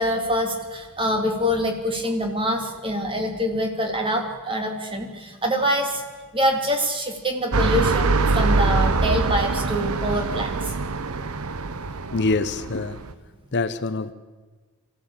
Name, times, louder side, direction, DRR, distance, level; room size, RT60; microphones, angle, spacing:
voice 1, 0.0-6.0 6.3-10.7, equal, 25° right, 3 dB, 2.8 m, -25 dB
sound 1, 7.5-13.1, right 3 dB, 75° right, 0.9 m, -24 dB
voice 2, 12.1-13.1 13.5-14.1, left 3 dB, 50° left, 13 dB, 0.8 m, -25 dB
23.0 x 15.5 x 8.8 m, 1.4 s
head